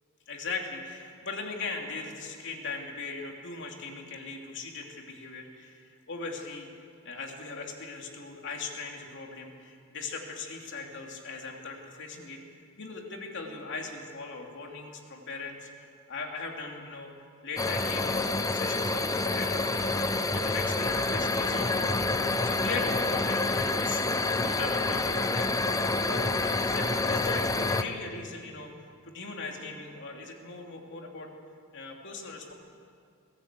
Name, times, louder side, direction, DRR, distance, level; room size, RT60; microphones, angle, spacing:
voice 1, 0.3-6.7 7.0-12.4 12.8-17.1 17.4-21.8 22.4-25.5 26.1-28.7 29.0-31.3 31.7-32.5, left 3 dB, 60° left, 1 dB, 2.8 m, -39 dB
sound 1, 17.6-27.8, left 2 dB, 15° left, 0.7 m, -28 dB
22.0 x 16.0 x 8.2 m, 2.3 s
head